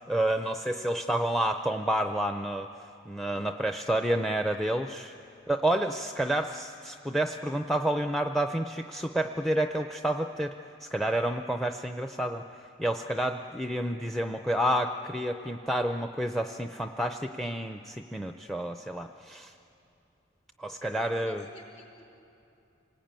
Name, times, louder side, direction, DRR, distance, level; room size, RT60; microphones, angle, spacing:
voice 1, 0.0-2.7 3.1-5.1 5.5-10.5 10.8-12.4 12.8-19.5 20.6-21.4, right 1 dB, ahead, 6 dB, 0.5 m, -29 dB
voice 2, 20.8-22.0, equal, 35° left, 0 dB, 4.7 m, -49 dB
28.0 x 20.0 x 9.0 m, 2.8 s
head